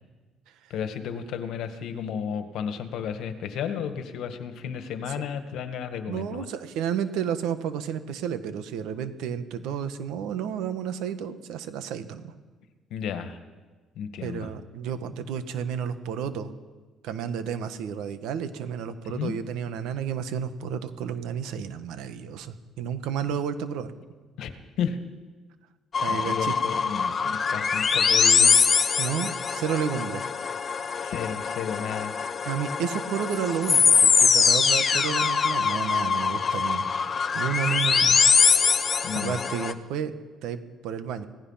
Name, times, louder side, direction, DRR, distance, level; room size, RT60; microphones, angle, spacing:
voice 1, 0.7-6.4 12.9-13.4 14.0-14.5 19.0-19.3 24.4-24.5 24.8-25.0 26.1-28.5 31.0-32.2 39.0-39.4, left 7 dB, 65° left, 8 dB, 1.8 m, -33 dB
voice 2, 6.1-12.3 14.2-16.5 17.0-23.9 26.0-26.5 29.0-30.2 32.4-36.9 37.3-38.2 39.1-40.1 40.4-41.3, right 8 dB, 80° right, 10 dB, 1.5 m, -31 dB
sound 1, 25.9-39.7, left 6 dB, 30° left, 0.9 m, -23 dB
26.0 x 17.0 x 5.8 m, 1.3 s
cardioid pair, 160°, 0 cm